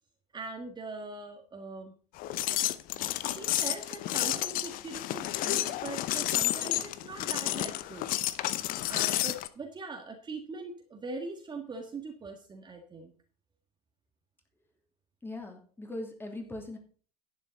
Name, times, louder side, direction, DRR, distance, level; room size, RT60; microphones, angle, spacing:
voice 1, 0.3-1.9 2.5-2.7 3.2-8.1 8.4-8.6 8.9-13.1, right 3 dB, 20° right, 4 dB, 1.8 m, -41 dB
sound 1, 2.2-9.5, left 15 dB, 45° left, 0.8 m, -31 dB
voice 2, 15.2-16.8, left 2 dB, 10° left, 2 dB, 2.9 m, -40 dB
11.0 x 9.3 x 4.1 m, 0.42 s
figure-of-eight pair, 75°, 20 cm